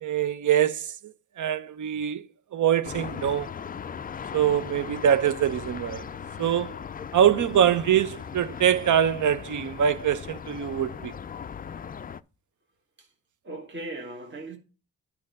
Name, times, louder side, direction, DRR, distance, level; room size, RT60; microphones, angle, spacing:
voice 1, 0.0-2.2 2.5-3.5 4.3-6.1 6.4-6.8 7.1-11.1, right 9 dB, 50° right, 0.8 m, -24 dB
sound 1, 2.8-12.2, left 7 dB, 25° left, 0.4 m, -38 dB
voice 2, 13.4-14.6, right 2 dB, 30° right, 1.4 m, -38 dB
9.5 x 4.6 x 5.3 m
supercardioid pair, 45°, 38 cm